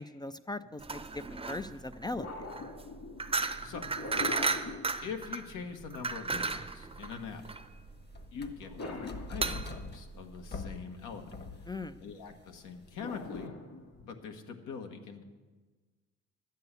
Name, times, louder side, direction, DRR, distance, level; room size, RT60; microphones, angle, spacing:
voice 1, 0.0-2.3 11.7-12.0, left 2 dB, 15° left, 12 dB, 0.4 m, -39 dB
sound 1, 0.6-0.8 2.2-5.6 8.6-10.0 13.0-14.2, left 3 dB, 55° left, 2.5 m, -42 dB
sound 2, 0.8-10.8, right 4 dB, 20° right, 0.7 m, -35 dB
voice 2, 5.0-7.5 8.3-11.7 12.0-13.5 14.1-15.2, left 6 dB, 85° left, 4 dB, 1.5 m, -43 dB
sound 3, 6.9-13.5, left 3 dB, 35° left, 1.1 m, -46 dB
11.5 x 8.2 x 8.1 m, 1.3 s
cardioid pair, 90°, 30 cm